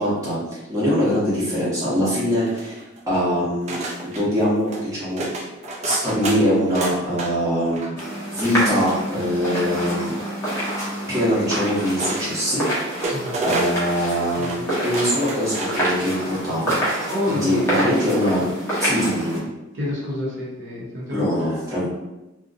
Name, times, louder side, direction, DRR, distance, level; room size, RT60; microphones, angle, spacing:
voice 1, 0.0-5.3 5.8-7.9 8.3-10.2 11.1-12.6 13.4-18.4 18.8-19.4 21.1-21.9, equal, 15° right, -9 dB, 0.9 m, -23 dB
sound 1, 2.4-3.1 3.7-4.2 4.6-4.9 5.2-7.3 7.6-8.0 8.9-9.7 11.0-11.1 12.0-13.9 14.2-14.6 14.9-15.9 16.3-16.4, right 2 dB, 35° right, 0.4 m, -30 dB
sound 2, 8.0-19.4, right 1 dB, 15° left, 0.7 m, -27 dB
voice 2, 17.1-17.7 19.7-21.9, left 1 dB, 70° right, -5 dB, 0.7 m, -29 dB
2.4 x 2.1 x 2.5 m, 0.99 s
head